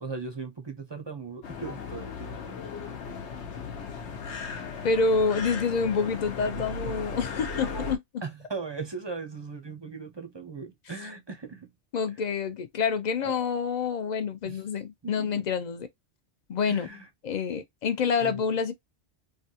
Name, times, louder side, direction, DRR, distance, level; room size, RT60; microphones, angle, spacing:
voice 1, 0.0-2.6 8.2-11.7 13.2-13.4 14.4-14.6 15.0-15.4 16.7-17.1 18.2-18.4, right 4 dB, 35° right, 0.5 m, -38 dB
sound 1, 1.4-8.0, left 4 dB, 85° left, 1.0 m, -36 dB
voice 2, 4.8-8.0 11.9-15.9 16.5-16.9 17.2-18.7, left 5 dB, 50° left, 0.6 m, -27 dB
3.3 x 2.3 x 2.7 m
omnidirectional pair, 1.1 m